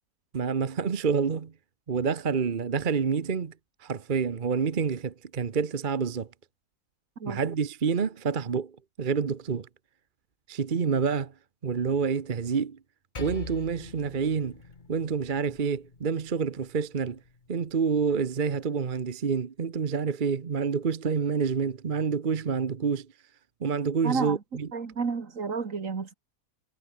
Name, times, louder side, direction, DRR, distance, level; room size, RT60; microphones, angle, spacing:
voice 1, 0.3-1.5 1.9-3.5 3.8-6.3 7.3-9.7 10.5-11.3 11.6-12.8 13.2-14.6 14.9-17.2 17.5-23.1 23.6-24.7, right 6 dB, 35° right, 1.0 m, -28 dB
Percussion, 13.2-17.9, left 4 dB, 30° left, 1.6 m, -45 dB
voice 2, 24.0-24.4 24.7-26.2, right 5 dB, 55° right, 2.3 m, -31 dB
omnidirectional pair, 1.6 m